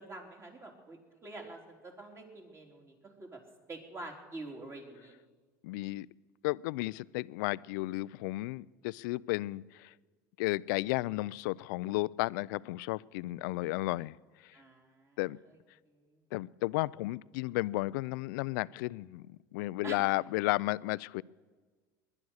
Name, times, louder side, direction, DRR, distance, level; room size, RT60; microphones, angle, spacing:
voice 1, 0.0-3.4 3.7-5.1 14.5-15.2 15.9-16.2 19.8-20.0, right 2 dB, 25° right, 2 dB, 3.6 m, -46 dB
voice 2, 5.6-6.1 6.4-9.9 10.4-14.2 14.4-14.5 15.2-15.4 16.3-19.3 19.5-21.2, left 20 dB, 75° left, 21 dB, 0.4 m, -33 dB
20.5 x 11.0 x 6.4 m, 1.5 s
hypercardioid pair, 85°, 10 cm